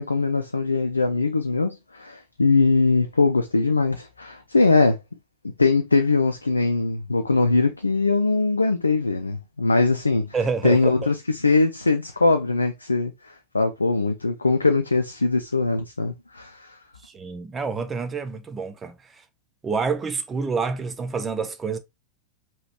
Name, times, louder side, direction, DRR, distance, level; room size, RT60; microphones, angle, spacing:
voice 1, 0.0-5.0 5.4-10.3 10.6-16.8, left 3 dB, 80° left, 0.5 m, -21 dB
voice 2, 10.3-11.1 17.0-18.9 19.6-21.8, right 5 dB, 20° right, 0.7 m, -28 dB
5.0 x 3.1 x 2.9 m
figure-of-eight pair, 90°, 0 cm